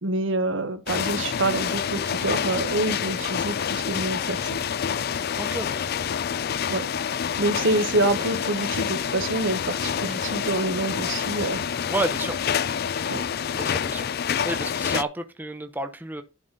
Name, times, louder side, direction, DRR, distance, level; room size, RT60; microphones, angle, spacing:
voice 1, 0.0-4.6 6.7-6.9 7.4-11.9 13.1-13.2, right 2 dB, 70° right, 1.1 m, -27 dB
sound 1, 0.9-15.0, left 8 dB, 50° left, 0.4 m, -27 dB
voice 2, 5.4-5.9 11.9-12.4 13.5-14.1 14.4-16.2, right 2 dB, 10° right, 0.7 m, -30 dB
11.0 x 4.1 x 5.2 m
head